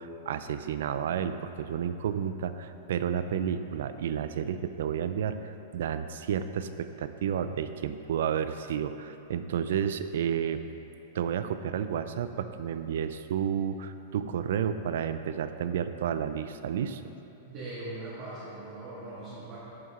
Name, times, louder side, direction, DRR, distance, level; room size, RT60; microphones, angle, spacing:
voice 1, 0.0-10.6 11.1-17.0, right 8 dB, 75° right, 11 dB, 0.4 m, -31 dB
voice 2, 17.4-19.6, right 2 dB, 40° right, -9 dB, 1.6 m, -40 dB
11.0 x 4.7 x 3.7 m, 3.0 s
supercardioid pair, 150°, 0 cm